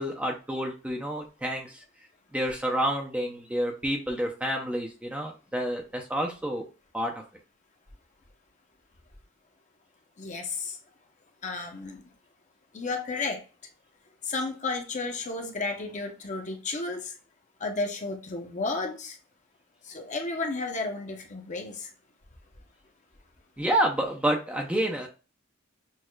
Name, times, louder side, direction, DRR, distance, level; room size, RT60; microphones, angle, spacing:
voice 1, 0.0-1.8 2.3-6.6 6.9-7.1 23.6-25.1, right 1 dB, 5° right, 1 dB, 0.5 m, -29 dB
voice 2, 10.2-10.8 11.4-12.0 12.7-13.4 14.2-17.2 17.6-19.2 19.8-21.9, left 3 dB, 35° left, 3 dB, 0.8 m, -32 dB
6.3 x 2.3 x 2.2 m, 0.33 s
head